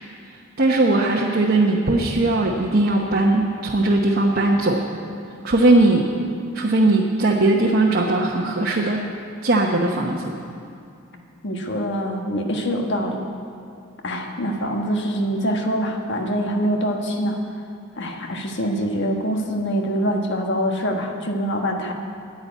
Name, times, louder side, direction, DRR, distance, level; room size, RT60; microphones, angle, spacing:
voice 1, 0.6-4.8 5.4-6.1 6.5-9.0 9.4-10.3, right 2 dB, 50° right, -1 dB, 0.9 m, -19 dB
voice 2, 11.4-13.2 14.0-17.4 18.0-21.9, equal, 60° left, 3 dB, 1.3 m, -24 dB
9.8 x 9.6 x 9.1 m, 2.5 s
head